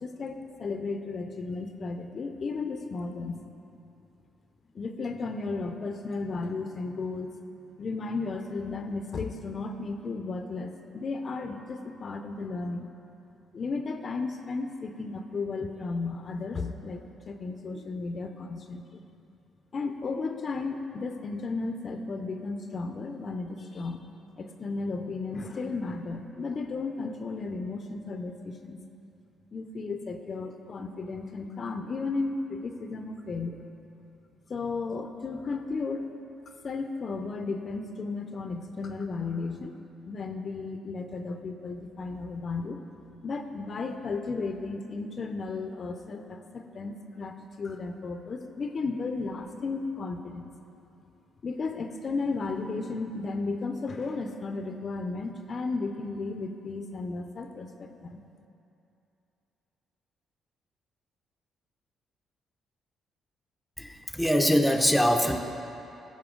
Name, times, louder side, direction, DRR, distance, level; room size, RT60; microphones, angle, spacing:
voice 1, 0.0-3.4 4.7-7.4 7.8-12.9 13.5-19.0 19.7-24.1 24.4-28.8 29.5-33.6 34.5-36.1 36.6-39.8 40.1-42.8 43.2-50.5 51.4-58.2, left 3 dB, 45° left, 6 dB, 0.5 m, -34 dB
voice 2, 63.8-65.4, equal, ahead, 3 dB, 0.6 m, -23 dB
14.0 x 5.5 x 3.8 m, 2.8 s
cardioid pair, 90°, 0 cm